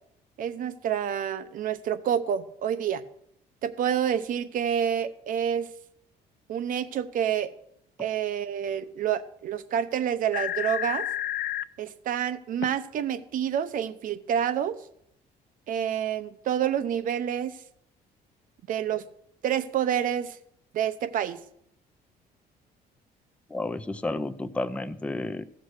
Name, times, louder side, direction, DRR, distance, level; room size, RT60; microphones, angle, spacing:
voice 1, 0.4-3.0 3.6-5.7 6.5-7.5 8.0-11.1 11.8-14.8 15.7-17.6 18.7-19.0 19.4-20.4 20.7-21.4, right 9 dB, 55° right, 11 dB, 0.8 m, -28 dB
sound 1, 10.0-10.1 10.3-11.6 12.6-12.7, left 13 dB, 90° left, 0.4 m, -30 dB
voice 2, 23.5-25.4, left 2 dB, 5° left, 11 dB, 0.5 m, -31 dB
15.5 x 6.3 x 6.4 m, 0.72 s
cardioid pair, 145°, 17 cm